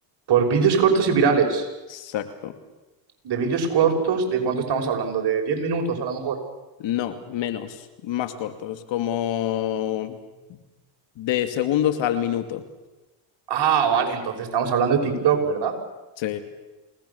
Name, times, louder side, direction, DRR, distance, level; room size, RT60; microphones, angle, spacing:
voice 1, 0.3-1.7 3.2-6.3 13.5-15.7, right 6 dB, 55° right, 2 dB, 6.0 m, -22 dB
voice 2, 1.9-2.5 6.8-10.2 10.5-10.6 11.2-12.6 16.2-16.4, left 11 dB, 65° left, 8 dB, 2.7 m, -27 dB
28.5 x 18.5 x 7.1 m, 1.1 s
supercardioid pair, 70°, 48 cm